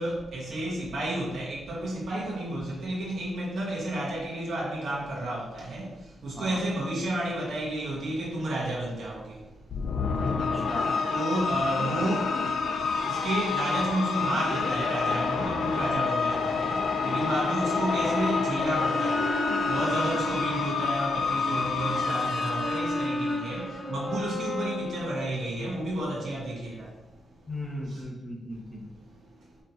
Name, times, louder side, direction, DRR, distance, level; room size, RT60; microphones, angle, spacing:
voice 1, 0.0-9.5 11.1-12.5 13.0-27.0 27.9-28.0 28.5-28.6 28.9-29.2, right 1 dB, 60° right, 1.3 m, -31 dB
sound 1, 9.7-24.1, left 5 dB, 70° left, 0.5 m, -29 dB
voice 2, 10.2-11.0 19.8-20.2 27.5-28.8, left 1 dB, 10° left, 0.9 m, -37 dB
Brass instrument, 17.0-20.9 21.5-25.6, left 2 dB, 5° right, 0.7 m, -33 dB
4.3 x 3.1 x 3.9 m
wide cardioid pair, 170°, 0 cm